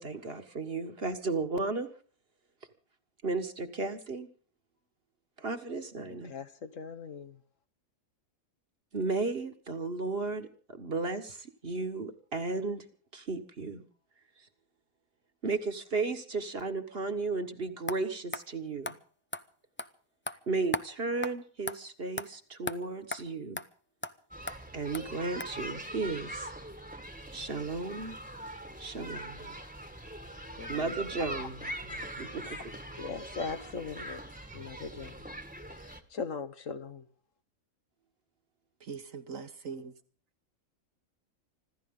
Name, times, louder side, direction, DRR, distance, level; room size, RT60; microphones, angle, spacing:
voice 1, 0.0-1.9 3.2-4.3 5.4-6.3 8.9-13.8 14.4-14.5 15.4-19.0 20.5-23.6 24.7-26.5 27.3-28.2 28.8-29.7 30.7-32.6, right 3 dB, 45° right, 1.8 m, -34 dB
voice 2, 6.1-7.4 30.6-30.9 31.4-31.5 32.5-32.6 33.0-34.2 34.5-35.2 35.8-37.1, left 5 dB, 65° left, 1.5 m, -40 dB
sound 1, 17.9-18.0 18.3-18.4 18.9-19.0 19.3-19.4 19.8-19.9 20.3-20.4 20.7-20.9 21.2-21.3 21.7-21.8 22.2-22.3 22.7-22.8 23.1-23.2 23.6-23.7 24.0-24.1 24.5-24.6 24.9-25.0 25.4-25.5, left 2 dB, 15° left, 0.4 m, -35 dB
sound 2, 24.3-36.0, right 1 dB, 5° right, 1.5 m, -42 dB
voice 3, 38.8-39.9, right 5 dB, 65° right, 1.8 m, -41 dB
25.5 x 14.0 x 3.8 m
omnidirectional pair, 1.5 m